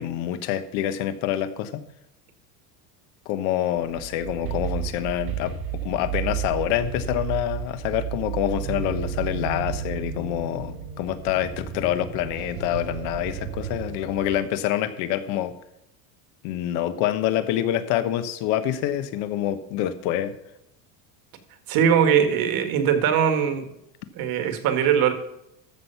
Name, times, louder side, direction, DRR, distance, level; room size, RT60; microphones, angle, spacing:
voice 1, 0.0-1.8 3.2-5.5 5.8-15.5 16.4-20.3, left 12 dB, 55° left, 11 dB, 1.2 m, -26 dB
sound 1, 3.8-14.4, right 8 dB, 85° right, 4.2 m, -32 dB
voice 2, 21.7-23.6 24.2-25.1, right 8 dB, 45° right, 7 dB, 1.9 m, -21 dB
14.0 x 6.3 x 5.7 m, 0.82 s
supercardioid pair, 150°, 47 cm